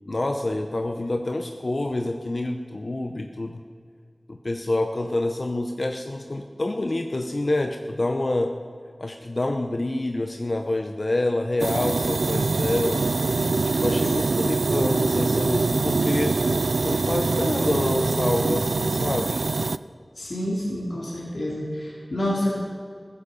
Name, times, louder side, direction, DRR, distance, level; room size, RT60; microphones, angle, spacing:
voice 1, 0.1-3.6 4.3-8.6 9.0-13.1 13.8-16.4 16.8-19.4, left 2 dB, 50° left, 5 dB, 0.9 m, -27 dB
sound 1, 11.6-19.8, right 3 dB, 90° right, 0.4 m, -24 dB
voice 2, 20.2-22.5, left 1 dB, 65° left, -4 dB, 3.8 m, -28 dB
15.5 x 15.0 x 5.6 m, 2.1 s
wide cardioid pair, 55°, 0 cm